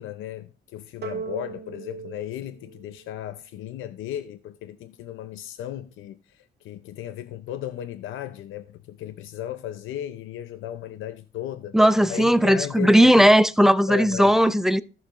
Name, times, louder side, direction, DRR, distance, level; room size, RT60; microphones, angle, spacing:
voice 1, 0.0-11.8 12.1-13.2 13.9-14.4, left 11 dB, 85° left, 0.7 m, -35 dB
sound 1, 1.0-3.6, right 6 dB, 55° right, 1.7 m, -38 dB
voice 2, 11.7-14.8, equal, ahead, 0.6 m, -17 dB
14.5 x 6.7 x 2.5 m
cardioid pair, 90°, 20 cm